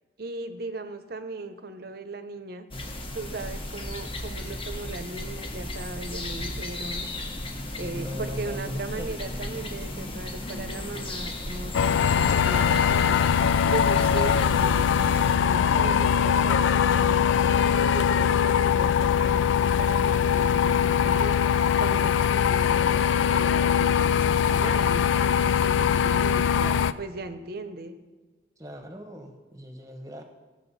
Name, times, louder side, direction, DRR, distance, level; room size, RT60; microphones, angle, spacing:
voice 1, 0.2-2.7 3.1-7.1 7.8-13.4 13.7-14.9 15.4-17.2 17.8-28.0, right 2 dB, 50° right, 9 dB, 0.7 m, -37 dB
sound 1, 2.7-15.4, left 1 dB, 25° left, 1.0 m, -35 dB
voice 2, 7.6-9.1 28.6-30.2, equal, 15° right, 5 dB, 1.0 m, -39 dB
sound 2, 11.7-26.9, left 8 dB, 75° left, 0.3 m, -22 dB
15.0 x 6.5 x 4.1 m, 1.3 s
head